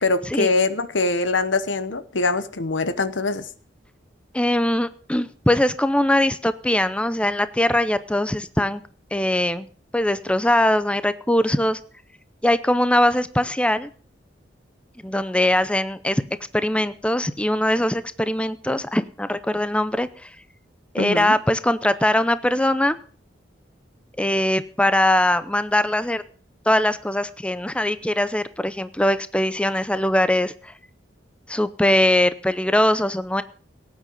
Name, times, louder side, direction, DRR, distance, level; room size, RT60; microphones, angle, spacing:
voice 1, 0.0-3.5 21.0-21.4, left 3 dB, 85° left, 13 dB, 1.2 m, -23 dB
voice 2, 4.3-8.8 9.1-9.7 9.9-11.8 12.4-13.9 15.0-16.2 16.5-20.3 20.9-23.0 24.2-26.2 26.7-30.7 31.5-33.4, left 1 dB, 5° left, 14 dB, 0.6 m, -21 dB
18.0 x 9.2 x 5.5 m, 0.42 s
head